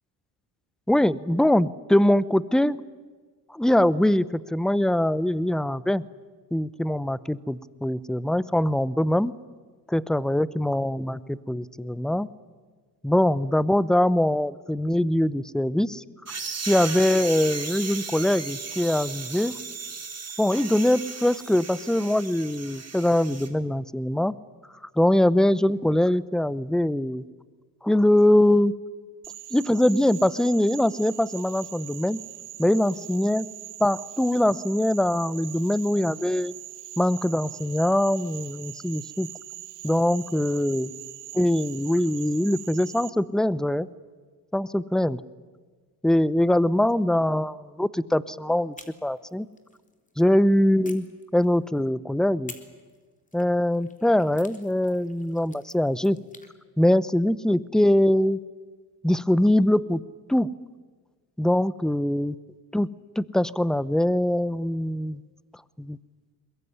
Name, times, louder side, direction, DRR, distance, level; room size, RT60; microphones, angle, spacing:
voice 1, 0.9-2.8 3.5-6.0 6.5-9.3 9.9-12.3 13.0-16.0 16.7-19.6 20.4-24.4 25.0-27.2 27.8-28.7 29.5-32.2 32.6-33.5 33.8-36.5 37.0-39.3 39.8-40.9 41.3-43.9 44.5-45.2 46.0-48.7 49.0-49.5 50.2-51.1 51.3-52.5 53.3-56.2 56.8-58.4 59.0-60.0 60.3-60.5 61.4-62.4 62.7-62.9 63.2-65.2 65.8-66.0, left 1 dB, ahead, 18 dB, 0.8 m, -22 dB
sound 1, 16.3-23.5, right 5 dB, 35° right, 3.2 m, -36 dB
Frog, 29.2-43.1, right 13 dB, 65° right, 1.2 m, -42 dB
sound 2, 48.7-50.3 50.8-51.9 52.5-56.5, left 2 dB, 15° left, 3.3 m, -50 dB
22.0 x 21.0 x 9.8 m, 1.5 s
supercardioid pair, 65°, 45 cm